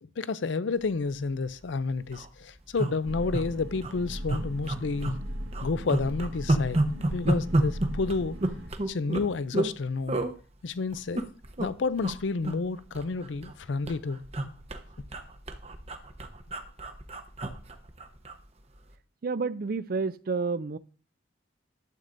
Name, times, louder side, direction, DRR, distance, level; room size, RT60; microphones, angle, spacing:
voice 1, 0.0-5.2 5.6-8.4 8.9-10.2 10.6-11.3 11.6-14.2, left 4 dB, 75° left, 0.5 m, -30 dB
sound 1, 1.3-1.5 1.8-1.9 2.0-2.3 2.8-3.4 3.8-3.9 4.3-5.2 5.5-9.7 10.1-10.3 10.9-11.7 12.0-12.2 12.4-13.6 13.9-18.4 18.7-18.9, right 1 dB, 35° right, 0.9 m, -30 dB
sound 2, 3.0-8.7, equal, 85° right, 1.8 m, -38 dB
voice 2, 19.2-20.8, right 4 dB, 50° right, 0.4 m, -30 dB
12.0 x 8.2 x 2.6 m
head